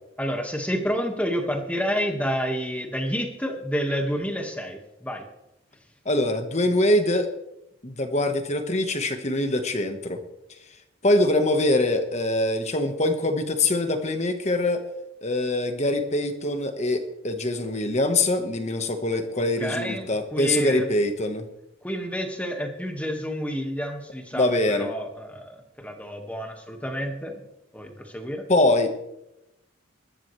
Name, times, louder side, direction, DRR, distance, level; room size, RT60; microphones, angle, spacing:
voice 1, 0.2-5.3 19.4-20.9 21.8-27.4 27.7-28.4, equal, 5° left, 3 dB, 1.9 m, -29 dB
voice 2, 6.0-7.3 7.8-10.2 11.0-14.8 15.2-21.5 24.3-24.9 28.5-28.9, left 1 dB, 35° left, 6 dB, 1.5 m, -23 dB
22.5 x 12.5 x 3.4 m, 0.87 s
head